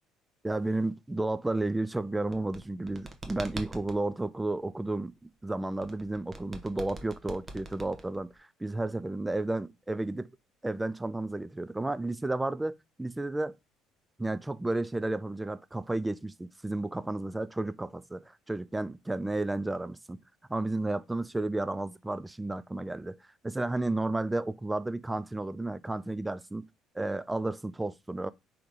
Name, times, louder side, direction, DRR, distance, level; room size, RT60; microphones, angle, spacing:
voice 1, 0.4-10.3 10.6-13.5 14.2-20.2 20.5-23.2 23.4-26.6 27.0-28.3, right 2 dB, 10° right, 0.3 m, -32 dB
sound 1, 2.3-4.0 5.8-8.4, right 2 dB, 35° right, 0.9 m, -43 dB
3.6 x 3.0 x 4.8 m
supercardioid pair, 90°, 0 cm